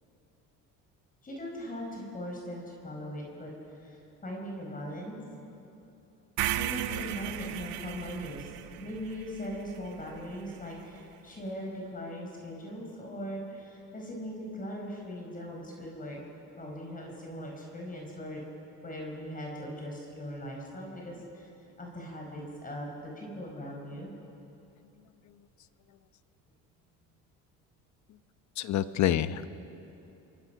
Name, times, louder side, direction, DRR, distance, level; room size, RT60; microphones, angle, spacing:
voice 1, 1.2-5.2 6.5-16.2 16.6-18.4 18.8-21.5 21.8-22.9 23.2-24.1, equal, 25° left, -1 dB, 4.9 m, -40 dB
sound 1, 6.4-10.5, right 13 dB, 80° right, 1.2 m, -35 dB
voice 2, 28.6-29.5, left 11 dB, 55° left, 13 dB, 1.0 m, -29 dB
28.5 x 22.5 x 5.8 m, 2.9 s
cardioid pair, 105°, 35 cm